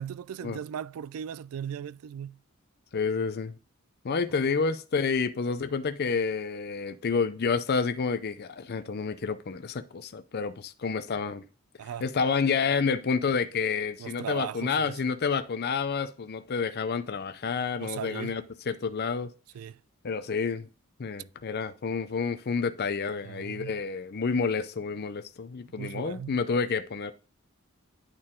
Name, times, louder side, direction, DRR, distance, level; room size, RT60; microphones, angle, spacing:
voice 1, 0.0-2.4 11.8-12.0 14.0-14.9 17.8-18.4 19.5-19.8 23.2-23.8 25.8-26.3, right 8 dB, 75° right, 0.3 m, -37 dB
voice 2, 2.9-3.5 4.0-11.4 12.0-19.3 20.0-20.7 21.0-27.1, left 5 dB, 45° left, 0.5 m, -29 dB
10.5 x 4.4 x 3.7 m
head